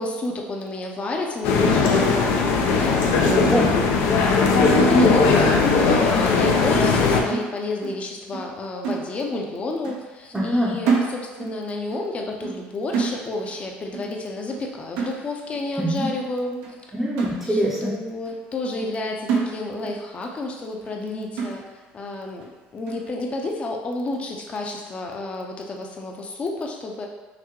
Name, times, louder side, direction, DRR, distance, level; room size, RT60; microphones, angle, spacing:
voice 1, 0.0-3.0 4.2-16.6 17.5-21.7 21.9-22.5 22.7-27.1, left 2 dB, 30° left, 2 dB, 0.6 m, -30 dB
sound 1, 1.4-7.2, left 4 dB, 75° left, 0.5 m, -18 dB
voice 2, 3.2-3.7 10.3-10.7 15.8-16.1 16.9-17.9, right 1 dB, 10° right, -7 dB, 0.6 m, -24 dB
sound 2, 6.7-8.1 8.3-8.6 8.8-9.5 9.8-10.1 10.4-11.6 11.9-12.1 12.4-12.7 12.9-13.6 13.9-14.2 14.5-14.7 15.0-15.6 16.1-16.2 16.6-16.8 17.2-17.9 18.3-18.4 18.8-19.0 19.3-20.0 20.3-20.4 20.9-21.0 21.4-21.9 22.4-22.5 22.9-23.1, right 5 dB, 90° right, 0.8 m, -29 dB
5.8 x 2.1 x 3.0 m, 1.2 s
cardioid pair, 120°, 4 cm